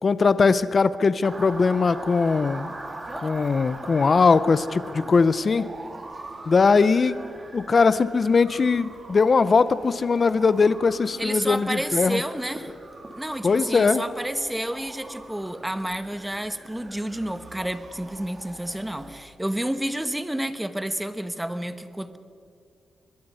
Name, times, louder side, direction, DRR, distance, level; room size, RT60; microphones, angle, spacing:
voice 1, 0.0-2.7 3.2-5.6 6.5-7.2 7.5-12.2 13.4-14.0, left 4 dB, 40° left, 15 dB, 0.6 m, -20 dB
Motor vehicle (road) / Siren, 1.2-19.2, right 2 dB, 25° right, 2.0 m, -41 dB
voice 2, 11.2-12.7 13.1-22.2, right 1 dB, 5° right, 11 dB, 1.0 m, -30 dB
22.0 x 21.5 x 5.6 m, 2.4 s
cardioid pair, 110°, 0 cm